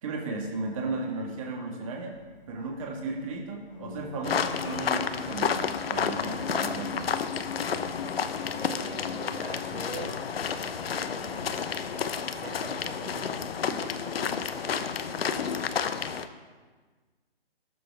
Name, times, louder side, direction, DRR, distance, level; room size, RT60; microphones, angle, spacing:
voice 1, 0.0-2.2 2.5-5.6 5.9-7.1, right 3 dB, 30° right, 0 dB, 1.8 m, -35 dB
Organ, 2.1-12.3, left 10 dB, 30° left, 0.5 m, -47 dB
sound 1, 4.2-16.3, left 6 dB, 70° left, 0.9 m, -31 dB
voice 2, 8.5-10.2 11.2-11.7 12.3-15.5, right 5 dB, 65° right, 3 dB, 1.5 m, -44 dB
18.5 x 7.2 x 3.5 m, 1.4 s
hypercardioid pair, 165°, 31 cm